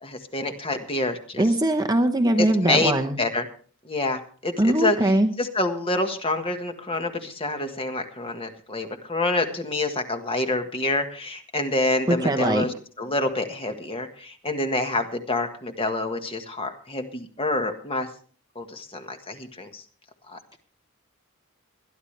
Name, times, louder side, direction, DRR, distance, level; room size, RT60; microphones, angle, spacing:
voice 1, 0.0-1.5 2.4-3.5 3.8-18.1 18.5-19.8 20.3-20.6, left 2 dB, 25° left, 6 dB, 1.5 m, -27 dB
voice 2, 1.4-3.2 4.6-5.3 12.1-12.7, right 1 dB, 15° right, 5 dB, 0.9 m, -21 dB
21.5 x 11.5 x 3.3 m, 0.41 s
head